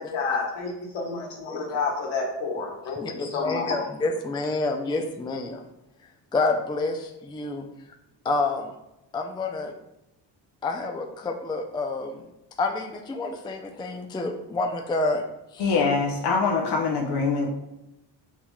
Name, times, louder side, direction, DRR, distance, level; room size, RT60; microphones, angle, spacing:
voice 1, 0.0-3.8, left 4 dB, 70° left, -2 dB, 1.5 m, -29 dB
voice 2, 3.0-5.6 6.3-7.7 8.2-8.7 9.1-9.7 10.6-12.3 12.6-15.2 15.5-15.7, left 3 dB, 10° left, 3 dB, 0.4 m, -28 dB
voice 3, 15.6-17.5, left 4 dB, 55° left, -1 dB, 0.8 m, -23 dB
5.8 x 2.9 x 2.2 m, 0.91 s
supercardioid pair, 55°, 49 cm